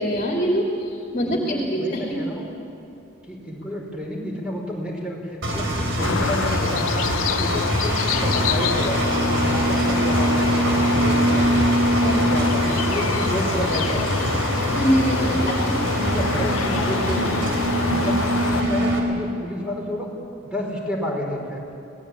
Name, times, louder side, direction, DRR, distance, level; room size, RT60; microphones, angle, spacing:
voice 1, 0.0-2.2 12.0-12.4 14.7-15.8, equal, 35° left, 0 dB, 2.7 m, -24 dB
voice 2, 1.2-2.5 3.3-7.0 7.4-9.0 9.3-11.7 12.0-14.4 15.2-15.8 16.0-17.5 17.8-18.2 18.5-20.1 20.4-21.6, equal, 5° right, -1 dB, 4.9 m, -30 dB
Engine, 5.4-19.0, right 1 dB, 65° right, 4.4 m, -23 dB
sound 1, 6.0-18.6, left 6 dB, 90° left, 0.7 m, -27 dB
26.5 x 18.5 x 9.0 m, 2.7 s
head